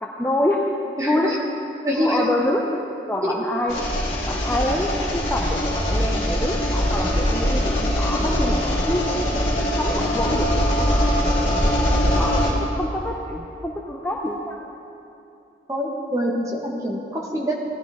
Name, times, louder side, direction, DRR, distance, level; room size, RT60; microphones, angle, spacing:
voice 1, 0.0-0.6 1.1-1.3 2.0-3.8 4.2-9.0 9.6-11.2 12.1-14.7, left 1 dB, 10° left, -1 dB, 0.6 m, -26 dB
voice 2, 1.0-1.4 1.8-2.3 3.2-3.3 15.7-17.5, equal, 20° right, -2 dB, 1.4 m, -25 dB
sound 1, 3.7-12.5, equal, 40° left, 2.2 m, -22 dB
17.0 x 11.0 x 3.6 m, 2.7 s
head